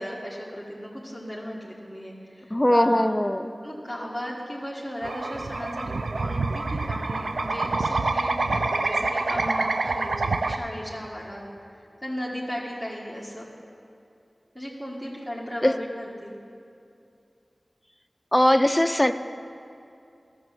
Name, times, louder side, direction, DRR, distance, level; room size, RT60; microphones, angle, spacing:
voice 1, 0.0-3.2 3.6-11.5 12.0-13.4 14.6-16.4, equal, 10° right, -5 dB, 1.7 m, -36 dB
voice 2, 2.5-3.5 15.6-15.7 18.3-19.1, left 1 dB, 15° left, 8 dB, 0.5 m, -20 dB
sound 1, 5.0-10.6, right 3 dB, 85° right, 0.4 m, -27 dB
12.5 x 6.2 x 7.9 m, 2.6 s
wide cardioid pair, 60°, 0 cm